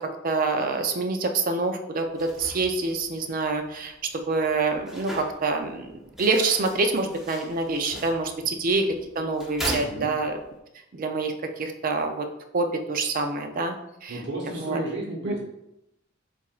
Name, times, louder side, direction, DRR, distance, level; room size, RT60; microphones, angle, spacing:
voice 1, 0.2-10.4 10.9-12.3 12.5-13.8 14.0-14.2 14.4-14.8 15.2-15.3, right 3 dB, 45° right, 6 dB, 0.4 m, -26 dB
sound 1, 2.1-10.6, right 1 dB, ahead, 0.6 m, -40 dB
voice 2, 9.6-10.1 14.1-15.4, right 1 dB, 60° right, -2 dB, 0.9 m, -33 dB
7.1 x 2.5 x 2.4 m, 0.86 s
head